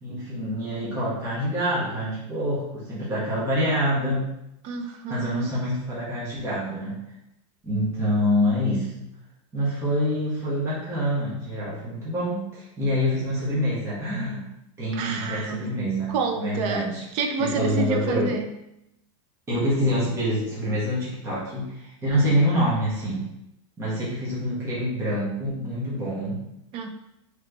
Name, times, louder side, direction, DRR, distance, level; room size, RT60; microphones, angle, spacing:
voice 1, 0.0-4.3 5.1-7.0 7.6-9.0 9.5-14.4 14.8-17.0 17.4-18.3 19.5-23.2 23.8-26.4, equal, 15° right, -8 dB, 1.3 m, -26 dB
voice 2, 4.6-5.5 14.9-15.7 16.1-18.5 26.7-26.9, right 4 dB, 35° right, 5 dB, 0.5 m, -28 dB
3.9 x 3.2 x 3.3 m, 0.84 s
supercardioid pair, 155°, 16 cm